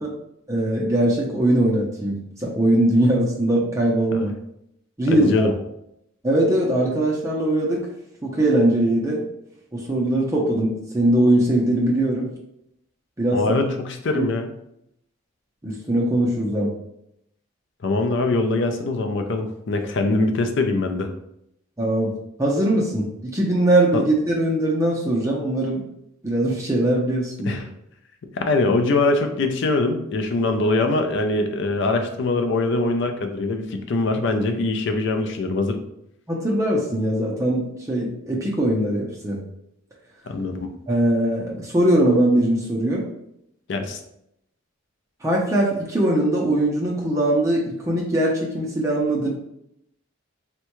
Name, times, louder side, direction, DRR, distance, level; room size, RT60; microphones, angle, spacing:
voice 1, 0.5-4.3 5.0-5.5 6.2-7.9 8.2-9.2 9.7-12.3 13.2-13.5 14.1-14.3 15.6-16.7 21.8-25.8 26.2-27.6 36.3-39.4 40.9-43.1 45.2-49.3, right 1 dB, 15° right, -3 dB, 0.5 m, -21 dB
voice 2, 5.1-5.5 13.3-14.5 17.8-21.1 23.9-24.0 27.5-27.6 28.3-35.8 40.3-40.7 43.7-44.0, left 2 dB, 60° left, 6 dB, 0.4 m, -22 dB
3.5 x 2.2 x 3.0 m, 0.78 s
head